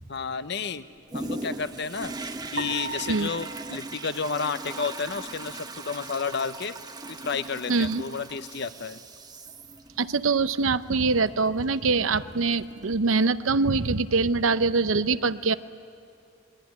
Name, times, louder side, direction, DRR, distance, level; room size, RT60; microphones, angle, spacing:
voice 1, 0.1-0.9 1.1-2.2 2.5-6.7 7.1-9.0, left 5 dB, 60° left, 12 dB, 0.8 m, -31 dB
Toilet flush, 1.1-13.5 14.1-14.2, right 2 dB, 20° right, 0.9 m, -40 dB
sound 1, 2.6-5.0, right 3 dB, 60° right, 1.4 m, -38 dB
voice 2, 7.7-8.0 10.0-15.5, right 4 dB, 85° right, 13 dB, 0.7 m, -24 dB
25.5 x 21.0 x 9.6 m, 2.5 s
head